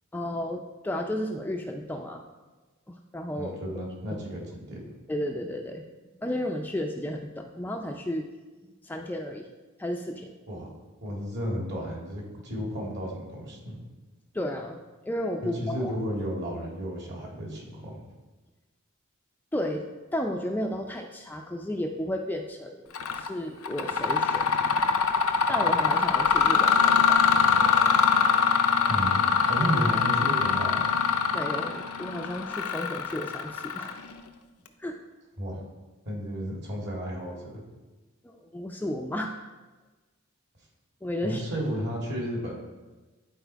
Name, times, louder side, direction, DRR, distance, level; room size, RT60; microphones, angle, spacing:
voice 1, 0.1-2.2 2.9-3.5 4.1-4.2 5.1-5.9 6.2-8.3 8.8-9.5 9.8-10.3 14.3-14.8 15.1-15.9 19.5-19.9 20.1-24.4 25.5-27.3 31.3-34.1 34.8-35.0 38.2-39.3 41.0-41.4, left 1 dB, 10° left, 2 dB, 0.4 m, -33 dB
voice 2, 3.4-4.8 10.5-10.7 11.0-13.8 15.4-18.0 28.9-31.0 35.4-35.7 36.0-37.6 41.2-42.5, equal, 55° right, -2 dB, 2.4 m, -33 dB
Mechanisms, 22.9-23.3 23.6-34.2, left 6 dB, 85° left, 0.6 m, -23 dB
10.0 x 4.2 x 4.6 m, 1.2 s
head